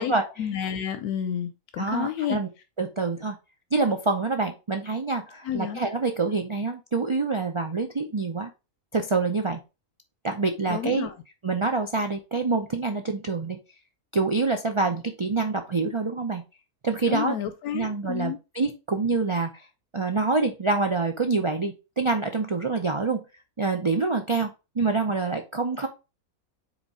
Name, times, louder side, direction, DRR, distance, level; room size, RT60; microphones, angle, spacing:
voice 1, 0.4-2.4 5.4-5.8 10.7-11.1 17.1-18.4, left 9 dB, 85° left, 9 dB, 1.2 m, -30 dB
voice 2, 1.8-2.5 2.8-3.4 3.7-8.5 8.9-9.6 10.2-11.1 11.4-13.6 14.1-16.4 16.8-17.3 17.7-19.6 19.9-23.2 23.6-24.5 24.8-25.9, right 3 dB, 50° right, 5 dB, 0.3 m, -26 dB
5.1 x 4.0 x 4.8 m, 0.28 s
omnidirectional pair, 1.6 m